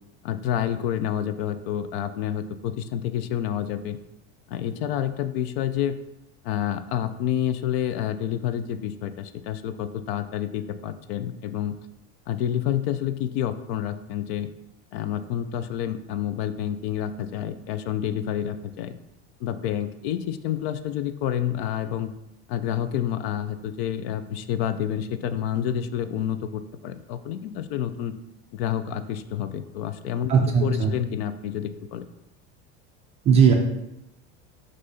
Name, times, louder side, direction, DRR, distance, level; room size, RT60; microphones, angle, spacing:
voice 1, 0.2-4.0 4.5-6.0 6.4-11.7 12.3-14.5 14.9-19.0 19.4-22.1 22.5-28.2 28.5-30.3 30.6-32.1, left 10 dB, 60° left, 11 dB, 0.5 m, -28 dB
voice 2, 30.3-30.9 33.2-33.5, right 6 dB, 20° right, 1 dB, 0.3 m, -18 dB
6.4 x 2.7 x 5.5 m, 0.88 s
cardioid pair, 170°, 34 cm